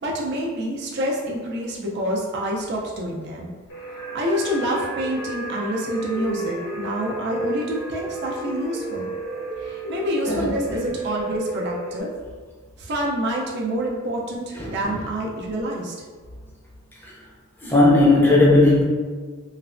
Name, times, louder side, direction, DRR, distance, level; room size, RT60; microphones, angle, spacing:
voice 1, 0.0-3.5 4.1-9.1 9.6-12.1 12.8-15.9, equal, 55° right, -2 dB, 0.4 m, -27 dB
sound 1, 3.7-12.0, right 2 dB, 80° left, 0.9 m, -32 dB
voice 2, 14.6-14.9 17.0-17.1 17.6-18.8, left 2 dB, 10° left, -5 dB, 0.5 m, -16 dB
3.1 x 2.0 x 2.5 m, 1.5 s
head